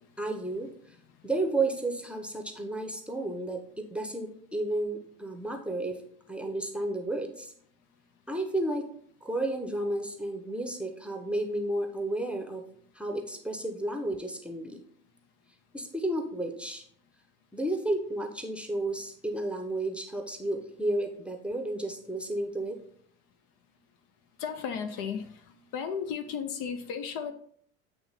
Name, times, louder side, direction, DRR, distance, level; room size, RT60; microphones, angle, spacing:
voice 1, 0.2-0.7 1.2-6.0 6.3-7.5 8.3-8.9 9.2-12.6 12.9-14.8 15.7-16.8 17.5-22.8, right 2 dB, 5° right, 3 dB, 0.8 m, -32 dB
voice 2, 24.4-25.2 25.7-27.3, left 7 dB, 55° left, 9 dB, 0.7 m, -34 dB
8.8 x 3.0 x 4.1 m, 0.63 s
hypercardioid pair, 75°, 41 cm